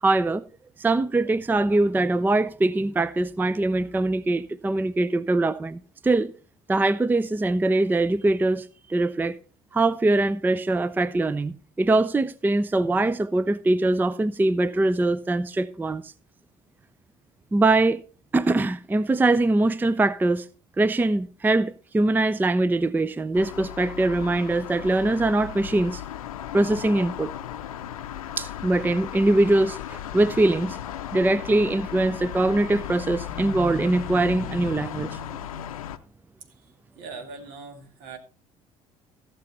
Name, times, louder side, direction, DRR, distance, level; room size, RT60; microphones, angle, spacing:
voice 1, 0.0-0.4 0.8-6.3 6.7-9.4 9.7-16.1 17.5-18.0 18.3-20.5 20.8-26.0 26.5-27.3 28.4-30.8 31.1-35.2, right 2 dB, 10° right, 0.5 m, -22 dB
Traffic noise in the street of Tuzla Bosnia, 23.3-36.0, left 11 dB, 80° left, 0.6 m, -36 dB
voice 2, 37.0-38.2, right 4 dB, 65° right, 2.1 m, -40 dB
15.5 x 6.8 x 4.2 m
figure-of-eight pair, 60°, 18 cm